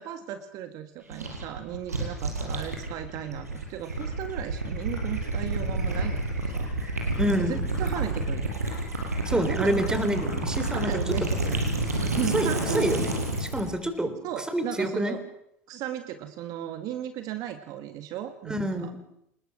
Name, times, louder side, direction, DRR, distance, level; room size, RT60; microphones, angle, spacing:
voice 1, 0.0-8.5 9.5-10.0 10.7-13.0 14.2-15.2 15.7-18.9, right 11 dB, 50° right, 9 dB, 1.8 m, -36 dB
Gurgling / Liquid, 1.1-13.7, right 2 dB, 85° right, 5.9 m, -29 dB
voice 2, 7.2-7.6 9.2-10.9 12.3-14.1 14.5-15.1 18.5-19.0, right 1 dB, 10° right, 10 dB, 3.9 m, -27 dB
28.5 x 20.0 x 6.2 m, 0.76 s
figure-of-eight pair, 75°, 8 cm